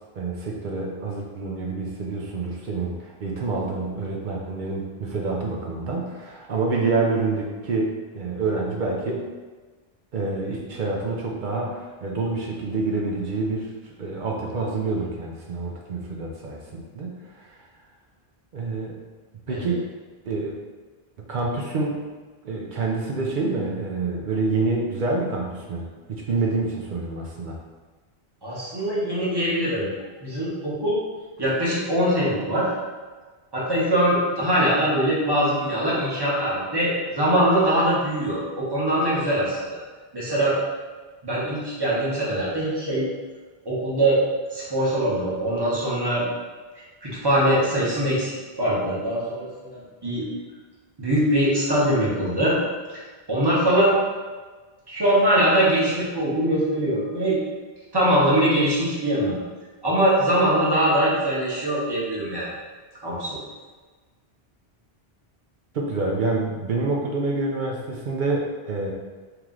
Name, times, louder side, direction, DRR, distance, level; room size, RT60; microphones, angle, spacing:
voice 1, 0.2-7.9 8.1-9.3 10.1-17.6 18.5-19.0 19.5-19.8 20.2-20.5 21.3-22.0 22.4-27.6 65.7-68.9, right 3 dB, 55° right, -1 dB, 0.6 m, -27 dB
voice 2, 28.4-29.9 30.2-31.0 31.4-32.7 33.5-39.8 40.1-40.6 41.2-43.1 43.6-44.2 44.5-46.2 46.8-50.2 51.0-52.6 52.9-53.0 53.3-53.9 54.9-57.4 57.9-59.4 59.8-62.5 63.0-63.4, right 1 dB, 25° right, -7 dB, 1.0 m, -22 dB
3.1 x 2.9 x 3.7 m, 1.3 s
omnidirectional pair, 1.1 m